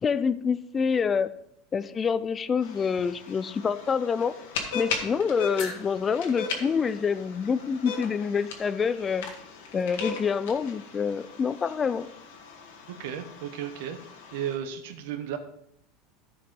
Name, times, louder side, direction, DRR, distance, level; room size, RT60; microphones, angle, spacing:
voice 1, 0.0-1.3 1.7-4.3 4.7-9.3 9.7-12.1, left 6 dB, 20° left, 14 dB, 0.3 m, -27 dB
sound 1, 2.6-14.6, left 4 dB, 90° left, 1.8 m, -38 dB
sound 2, 5.5-10.0, left 5 dB, 60° left, 1.9 m, -45 dB
voice 2, 12.9-15.4, right 9 dB, 75° right, 7 dB, 0.9 m, -34 dB
14.5 x 5.0 x 3.7 m, 0.75 s
supercardioid pair, 145°, 0 cm